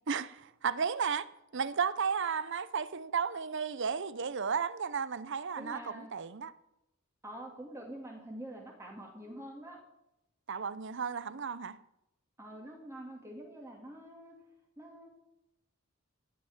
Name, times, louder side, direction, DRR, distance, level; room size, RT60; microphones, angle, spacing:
voice 1, 0.1-1.3 1.5-6.5 10.5-11.8, right 6 dB, 60° right, 0.7 m, -33 dB
voice 2, 5.6-6.1 7.2-9.8 12.4-14.3 14.8-15.1, right 1 dB, 15° right, 2.6 m, -46 dB
16.0 x 5.7 x 9.9 m
head